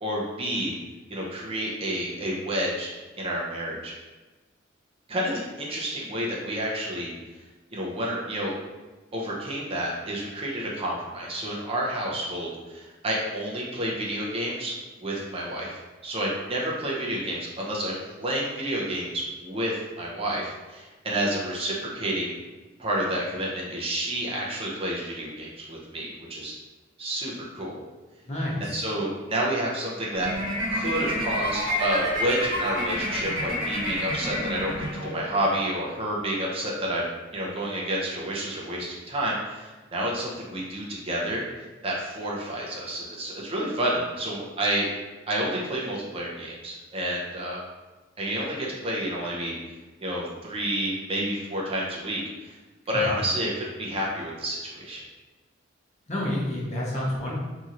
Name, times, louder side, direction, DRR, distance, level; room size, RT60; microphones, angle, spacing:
voice 1, 0.0-0.7 1.1-3.9 5.1-7.1 7.7-8.5 9.1-22.3 22.8-26.5 27.0-27.8 28.6-34.7 35.0-37.1 37.3-41.4 41.8-44.9 45.3-47.6 48.2-49.5 50.0-52.6 52.9-55.0, right 1 dB, 30° right, -3 dB, 0.6 m, -30 dB
voice 2, 28.3-28.8 52.9-53.2 56.1-57.3, left 1 dB, 35° left, -5 dB, 0.7 m, -29 dB
sound 1, 30.2-35.4, equal, 75° right, 1.1 m, -28 dB
2.9 x 2.7 x 2.5 m, 1.2 s
head